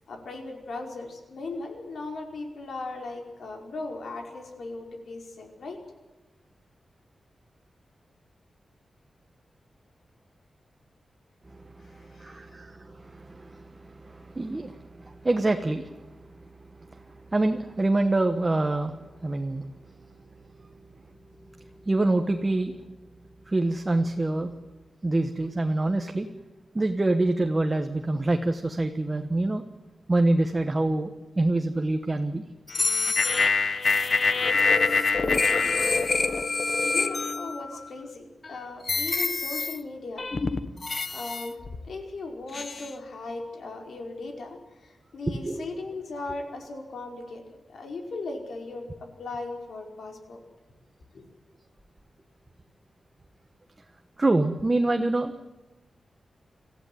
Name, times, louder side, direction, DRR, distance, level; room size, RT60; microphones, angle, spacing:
voice 1, 0.1-5.8 11.8-12.5 36.8-40.2 41.1-50.4 51.1-51.2, left 3 dB, 70° left, 3 dB, 5.1 m, -38 dB
voice 2, 11.5-16.5 16.8-20.8 21.2-21.3 21.6-22.9 23.5-24.5 25.0-26.3 26.7-29.6 30.1-31.1 31.4-32.4 45.4-45.6 54.2-55.3, right 2 dB, 20° right, 6 dB, 1.3 m, -26 dB
sound 1, 32.7-37.9 38.4-38.5 38.9-39.8 40.2-41.9 42.5-42.9, left 4 dB, 35° left, 1.3 m, -25 dB
26.5 x 15.0 x 9.4 m, 1.2 s
wide cardioid pair, 160°, 0 cm